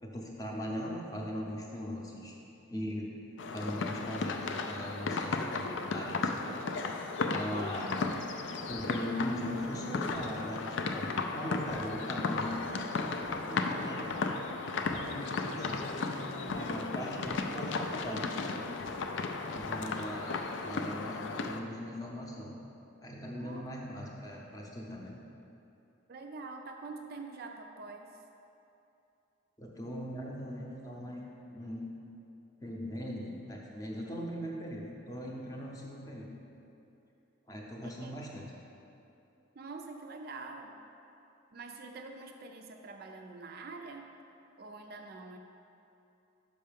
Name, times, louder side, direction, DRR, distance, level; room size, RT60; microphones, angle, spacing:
voice 1, 0.0-2.3 2.7-3.1 3.5-6.6 7.3-8.0 8.7-12.6 13.5-14.1 14.9-16.2 16.5-18.3 19.6-22.6 23.0-25.2 29.6-31.9 32.6-36.3 37.5-38.5, equal, 15° left, -2 dB, 0.7 m, -40 dB
sound 1, 3.4-21.6, left 4 dB, 60° left, 0.4 m, -35 dB
sound 2, 7.9-20.4, equal, 80° left, 0.9 m, -54 dB
voice 2, 23.4-23.7 26.1-28.2 37.8-38.1 39.6-40.7 41.5-44.1 44.6-45.4, right 3 dB, 45° right, 3 dB, 0.4 m, -45 dB
5.5 x 5.5 x 5.1 m, 2.8 s
head